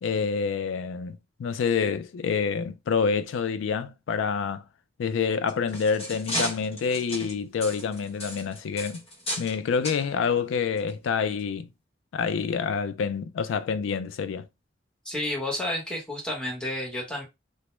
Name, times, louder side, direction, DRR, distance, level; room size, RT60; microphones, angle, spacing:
voice 1, 0.0-4.6 5.0-9.0 9.4-11.7 12.1-14.5, left 6 dB, 80° left, 0.3 m, -27 dB
sound 1, 5.3-9.6 9.8-10.0 10.8-10.9 11.4-11.5, equal, 30° left, 0.9 m, -34 dB
voice 2, 15.0-17.2, left 1 dB, 5° left, 0.9 m, -31 dB
2.1 x 2.0 x 3.0 m
head